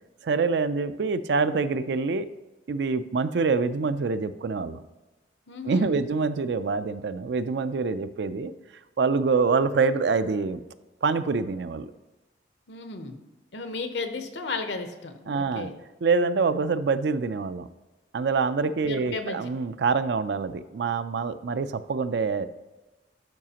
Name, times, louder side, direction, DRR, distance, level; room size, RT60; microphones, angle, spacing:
voice 1, 0.2-2.3 2.7-4.8 5.7-8.5 9.0-10.6 11.0-11.9 15.3-15.7 16.0-17.7 18.1-22.5, right 4 dB, 70° right, 12 dB, 0.4 m, -25 dB
voice 2, 5.5-6.0 12.7-13.3 13.5-15.7 18.9-19.4, left 3 dB, 75° left, 7 dB, 0.8 m, -34 dB
12.0 x 4.9 x 2.9 m, 1.1 s
head